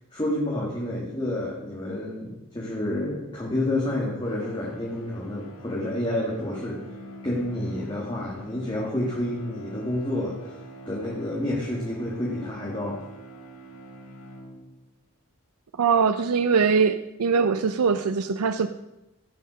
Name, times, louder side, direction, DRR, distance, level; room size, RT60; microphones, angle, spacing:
voice 1, 0.1-6.8 7.2-10.6 10.9-13.0, left 1 dB, 20° left, -4 dB, 1.9 m, -29 dB
sound 1, 4.2-15.0, equal, 80° left, 1.8 m, -45 dB
voice 2, 15.8-18.7, right 5 dB, 90° right, 10 dB, 0.5 m, -22 dB
17.0 x 5.7 x 6.2 m, 0.94 s
head